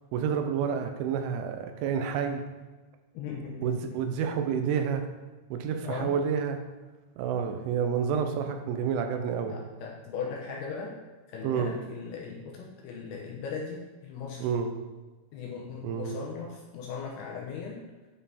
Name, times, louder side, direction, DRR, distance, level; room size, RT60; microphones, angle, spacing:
voice 1, 0.1-2.5 3.6-5.0 5.5-6.6 7.2-9.5 11.4-11.8 14.4-14.7 15.8-16.1, right 7 dB, 90° right, 5 dB, 3.3 m, -29 dB
voice 2, 3.1-4.0 5.8-6.2 9.5-11.0 11.3-14.6 15.3-17.9, left 5 dB, 75° left, -2 dB, 2.5 m, -38 dB
9.3 x 5.6 x 4.2 m, 1.2 s
omnidirectional pair, 5.4 m